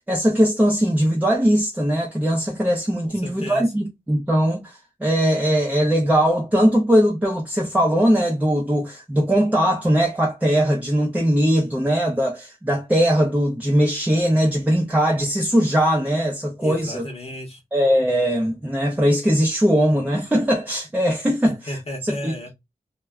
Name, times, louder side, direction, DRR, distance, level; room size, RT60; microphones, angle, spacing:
voice 1, 0.0-17.0 17.7-21.8 22.2-22.5, equal, 10° right, 0.6 m, -20 dB
voice 2, 3.0-3.7 16.6-17.6 21.4-22.5, left 1 dB, 45° left, 0.8 m, -34 dB
2.2 x 2.2 x 3.5 m
wide cardioid pair, 85°, 14 cm